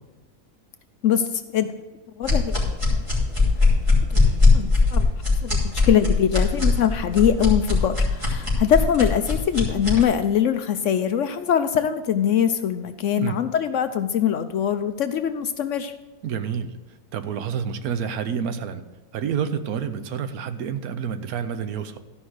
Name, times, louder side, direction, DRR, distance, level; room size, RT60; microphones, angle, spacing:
voice 1, 1.0-1.7 2.2-2.7 4.1-4.2 4.5-5.1 5.4-15.9, left 9 dB, 65° left, 10 dB, 0.8 m, -22 dB
sound 1, 2.2-10.0, left 3 dB, 20° right, 2.8 m, -20 dB
voice 2, 16.2-16.7 17.1-18.8 19.1-22.0, right 7 dB, 75° right, 10 dB, 1.2 m, -28 dB
13.0 x 5.4 x 6.4 m, 1.2 s
omnidirectional pair, 1.6 m